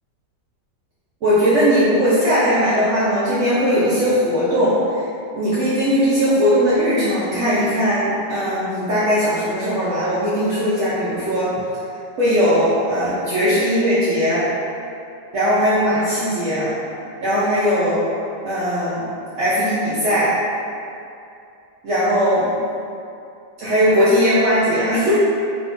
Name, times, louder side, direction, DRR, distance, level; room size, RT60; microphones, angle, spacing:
voice 1, 1.2-5.1 5.3-11.5 12.2-14.5 15.3-16.7 17.2-18.0 18.4-19.1 19.3-20.3 21.8-22.6 23.6-25.1, equal, 65° right, -11 dB, 0.8 m, -19 dB
2.9 x 2.6 x 3.5 m, 2.6 s
omnidirectional pair, 1.9 m